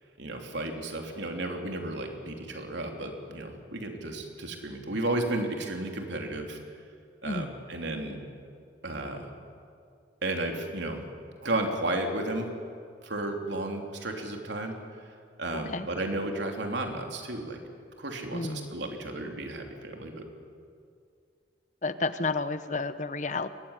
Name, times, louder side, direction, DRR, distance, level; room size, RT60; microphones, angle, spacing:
voice 1, 0.2-6.6 7.2-8.2 8.8-9.3 10.2-11.0 11.4-12.5 13.0-14.8 15.4-17.6 18.0-20.3, right 2 dB, 75° right, 3 dB, 3.3 m, -33 dB
voice 2, 18.3-18.7 21.8-23.5, left 3 dB, 40° left, 12 dB, 0.9 m, -31 dB
22.5 x 18.5 x 10.0 m, 2.3 s
head